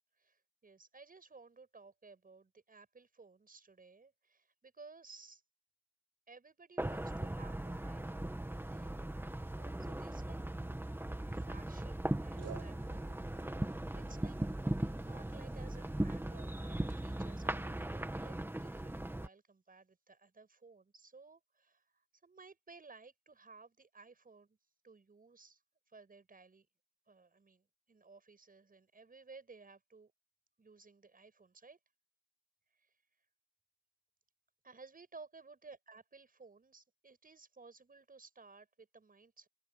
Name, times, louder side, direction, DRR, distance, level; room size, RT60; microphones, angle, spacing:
voice 1, 0.2-5.4 6.3-9.3 9.6-10.4 11.2-13.2 14.0-14.4 14.6-24.6 24.8-25.6 25.9-26.7 27.1-30.1 30.6-31.8 32.7-32.9 34.6-39.5, right 4 dB, 30° right, 6.9 m, -58 dB
sound 1, 6.8-19.3, right 1 dB, 5° right, 1.9 m, -39 dB
sound 2, 12.4-18.3, right 8 dB, 55° right, 3.9 m, -58 dB
open air
cardioid pair, 90°, 30 cm